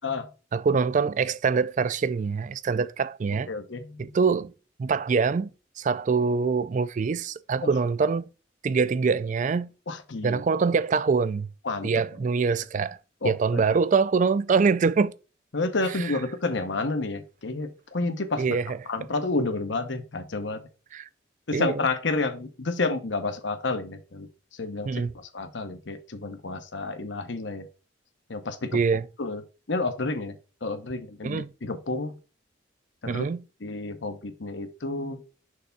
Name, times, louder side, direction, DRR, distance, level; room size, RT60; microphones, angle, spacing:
voice 1, 0.5-3.5 4.0-4.5 4.8-5.5 5.8-8.3 8.6-9.7 10.2-11.5 11.8-13.0 13.2-15.1 18.4-18.8 20.9-21.1 21.5-21.8 24.9-25.1 28.7-29.0 31.2-31.5 33.1-33.4, right 5 dB, 40° right, 0.3 m, -24 dB
voice 2, 3.5-4.2 7.6-7.7 9.9-10.4 11.6-12.0 13.2-13.6 15.5-18.6 18.9-20.6 21.5-27.7 28.3-28.8 29.2-29.4 29.7-32.2 33.0-33.3 33.6-35.2, left 3 dB, 75° left, 1.0 m, -30 dB
6.5 x 3.4 x 5.4 m
head